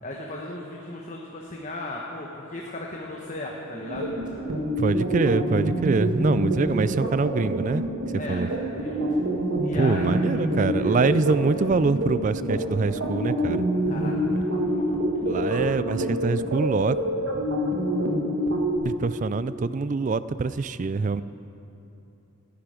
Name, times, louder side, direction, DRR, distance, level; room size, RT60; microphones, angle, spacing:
voice 1, 0.0-4.1 8.2-8.4 8.7-9.2 9.6-11.1 12.5-12.9 13.9-15.7, left 1 dB, 35° left, -1 dB, 1.1 m, -37 dB
sound 1, 3.7-18.8, right 1 dB, 65° right, 1.7 m, -27 dB
sound 2, 4.0-13.0, right 3 dB, 20° right, 1.9 m, -40 dB
voice 2, 4.8-7.8 8.3-8.5 9.7-13.6 15.3-17.0 18.8-21.2, right 4 dB, 35° right, 15 dB, 0.3 m, -24 dB
19.0 x 10.5 x 5.1 m, 2.9 s
head